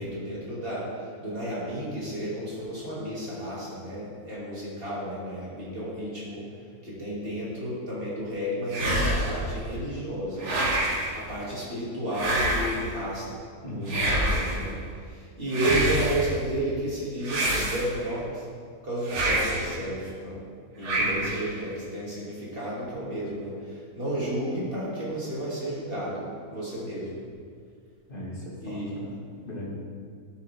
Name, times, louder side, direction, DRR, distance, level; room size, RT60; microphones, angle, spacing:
voice 1, 0.0-6.4 6.8-10.5 11.1-13.4 13.7-18.4 18.8-20.4 20.8-27.1 28.6-29.0, right 1 dB, 35° right, -7 dB, 3.0 m, -32 dB
sound 1, 8.7-9.5 10.4-11.2 12.1-12.9 13.9-14.7 15.5-16.3 17.2-18.1 19.1-19.7 20.8-21.5, right 1 dB, 50° right, 1.5 m, -27 dB
voice 2, 13.6-14.0 20.9-21.1 28.1-29.1 29.4-29.7, left 1 dB, 35° left, -6 dB, 2.5 m, -37 dB
12.0 x 7.7 x 3.7 m, 2.1 s
omnidirectional pair, 1.6 m